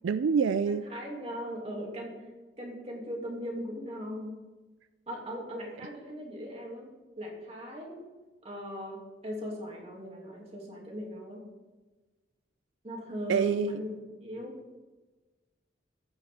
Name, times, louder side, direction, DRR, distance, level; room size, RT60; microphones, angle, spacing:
voice 1, 0.0-0.8 13.3-13.8, right 5 dB, 85° right, 12 dB, 0.4 m, -26 dB
voice 2, 0.9-2.2 2.6-4.3 5.1-8.0 8.4-11.4 12.8-14.6, equal, 35° right, -1 dB, 2.6 m, -39 dB
14.5 x 8.8 x 3.6 m, 1.2 s
head